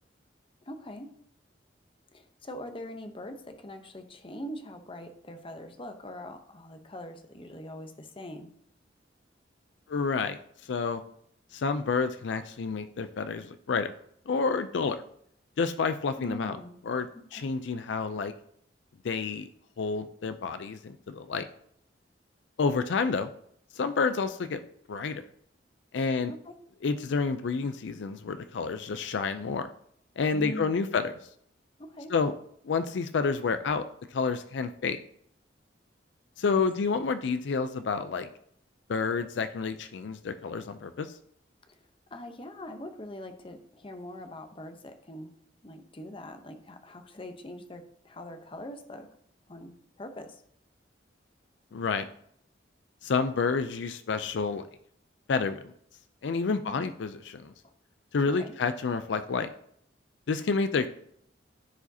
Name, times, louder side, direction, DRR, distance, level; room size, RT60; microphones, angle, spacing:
voice 1, 0.6-1.1 2.1-8.5 16.2-16.8 17.4-17.5 25.9-26.0 26.4-26.5 30.3-31.1 31.8-32.1 36.5-36.7 41.7-41.8 42.1-45.3 45.6-49.1 49.5-50.4 56.5-56.9 57.6-57.7 58.4-58.5, left 1 dB, 30° left, 6 dB, 0.8 m, -42 dB
voice 2, 9.9-11.0 11.5-13.9 14.3-15.0 15.6-16.6 16.9-18.3 19.0-19.5 19.8-21.5 22.6-23.3 23.7-24.6 24.9-25.2 25.9-26.3 26.8-29.7 30.2-31.1 32.1-32.3 32.6-33.8 34.1-35.0 36.4-38.3 38.9-41.1 51.7-52.1 53.0-54.6 55.3-55.7 56.2-57.5 58.1-59.5 60.3-60.9, left 4 dB, 70° left, 10 dB, 0.4 m, -29 dB
14.0 x 4.9 x 2.7 m, 0.68 s
head